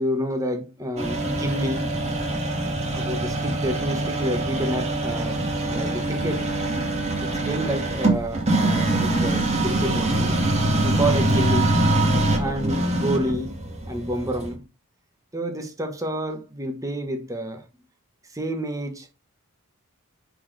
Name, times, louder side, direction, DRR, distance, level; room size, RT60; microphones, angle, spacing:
voice 1, 0.0-1.9 2.9-5.4 5.6-6.4 7.2-10.4 10.8-11.7 12.4-13.6 13.9-14.7 15.3-17.6 18.3-19.1, equal, 15° right, 1.4 m, -29 dB
sound 1, 1.0-14.5, right 1 dB, 30° right, 2.1 m, -24 dB
9.7 x 4.5 x 3.3 m
head